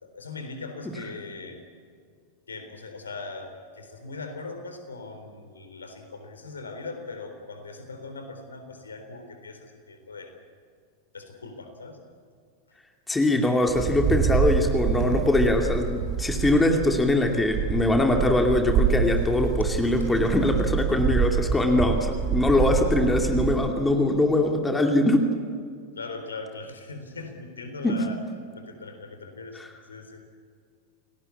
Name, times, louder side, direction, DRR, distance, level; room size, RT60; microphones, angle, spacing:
voice 1, 0.0-1.6 2.5-10.3 11.1-12.0 20.0-20.1 25.9-28.2 28.5-29.6 29.9-30.2, left 3 dB, 75° left, 7 dB, 3.9 m, -40 dB
voice 2, 13.1-25.3 27.8-28.0 29.6-29.7, left 2 dB, 10° left, 3 dB, 2.6 m, -22 dB
Wind, 13.7-23.7, right 7 dB, 35° right, 3.6 m, -26 dB
29.5 x 18.5 x 8.5 m, 2.1 s
figure-of-eight pair, 90°, 0 cm